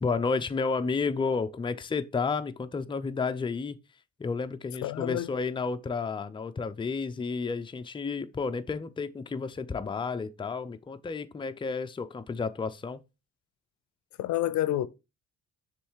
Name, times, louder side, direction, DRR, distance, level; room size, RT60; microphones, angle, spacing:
voice 1, 0.0-3.8 4.2-13.0, left 4 dB, 15° left, 0.5 m, -31 dB
voice 2, 4.8-5.3 14.2-14.9, left 13 dB, 70° left, 0.5 m, -28 dB
6.8 x 3.2 x 4.6 m
cardioid pair, 90°, 30 cm